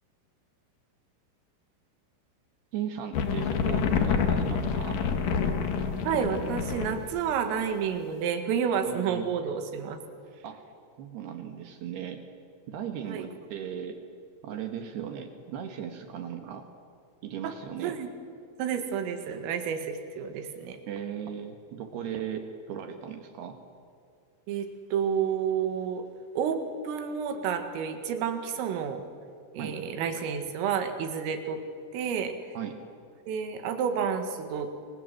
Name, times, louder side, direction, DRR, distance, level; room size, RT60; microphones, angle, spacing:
voice 1, 2.7-5.0 8.9-9.3 10.4-10.6 11.0-12.2 12.7-14.0 14.4-16.7 17.2-18.0 20.9-23.6 29.6-29.8 32.5-32.8, right 8 dB, 65° right, 6 dB, 3.1 m, -37 dB
sound 1, 3.1-7.1, left 6 dB, 55° left, 2.7 m, -27 dB
voice 2, 6.1-10.0 13.1-13.3 17.8-18.1 18.6-20.8 24.5-24.7 24.9-26.0 26.4-29.0 29.5-31.6 31.9-32.3 33.3-34.7, right 7 dB, 85° right, 6 dB, 4.6 m, -30 dB
29.0 x 24.0 x 7.8 m, 2.4 s
omnidirectional pair, 5.8 m